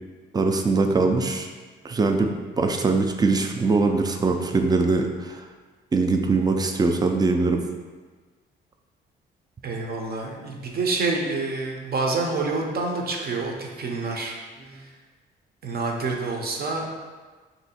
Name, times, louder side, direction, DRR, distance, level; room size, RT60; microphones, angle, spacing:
voice 1, 0.3-1.5 1.8-5.4 5.9-7.6, right 3 dB, 20° right, 4 dB, 0.4 m, -22 dB
voice 2, 9.6-14.4 14.8-14.9 15.6-16.9, right 3 dB, 50° right, 0 dB, 0.7 m, -27 dB
3.1 x 2.7 x 4.2 m, 1.4 s
cardioid pair, 90°, 20 cm